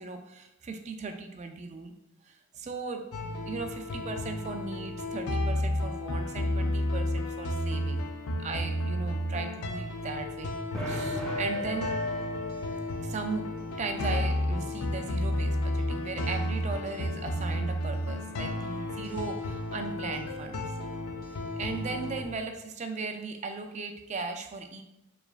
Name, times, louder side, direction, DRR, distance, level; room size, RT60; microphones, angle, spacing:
voice 1, 0.0-1.9 2.2-8.1 8.4-10.5 10.9-11.9 13.0-13.5 13.8-20.6 21.5-24.8, right 4 dB, 30° right, 6 dB, 0.3 m, -37 dB
sound 1, 3.1-22.2, left 1 dB, 85° left, 0.5 m, -32 dB
sound 2, 10.7-13.4, left 1 dB, 5° left, 0.7 m, -34 dB
4.5 x 3.3 x 2.4 m, 0.92 s
head